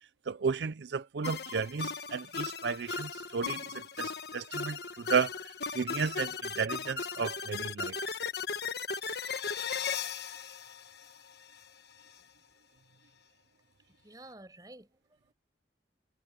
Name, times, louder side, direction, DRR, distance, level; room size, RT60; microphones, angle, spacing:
voice 1, 0.3-5.3 5.7-8.0, right 5 dB, 75° right, 0.5 m, -33 dB
sound 1, 1.2-11.6, left 5 dB, 60° left, 1.4 m, -37 dB
voice 2, 13.9-15.3, right 1 dB, 20° right, 5.3 m, -52 dB
head